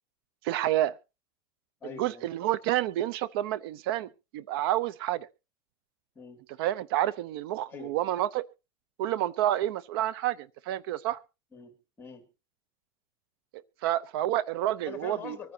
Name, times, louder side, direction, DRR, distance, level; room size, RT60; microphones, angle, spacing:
voice 1, 0.4-0.9 2.0-5.3 6.6-8.4 9.0-11.2 13.5-15.4, right 13 dB, 75° right, 19 dB, 0.6 m, -29 dB
voice 2, 1.8-2.3 6.1-6.4 7.7-8.0 11.5-12.3 14.8-15.5, left 6 dB, 15° left, 7 dB, 2.4 m, -44 dB
24.5 x 9.6 x 2.8 m, 0.29 s
cardioid pair, 165°, 12 cm